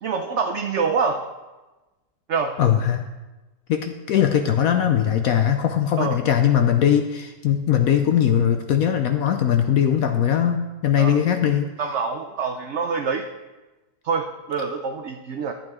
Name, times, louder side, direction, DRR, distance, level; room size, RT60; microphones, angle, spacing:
voice 1, 0.0-1.2 2.3-2.6 6.0-6.2 11.0-11.2 11.8-13.3 14.0-15.5, right 5 dB, 60° right, 4 dB, 0.7 m, -25 dB
voice 2, 2.6-3.1 3.7-11.7, left 9 dB, 70° left, 6 dB, 1.0 m, -20 dB
11.5 x 8.7 x 3.6 m, 1.1 s
omnidirectional pair, 1.7 m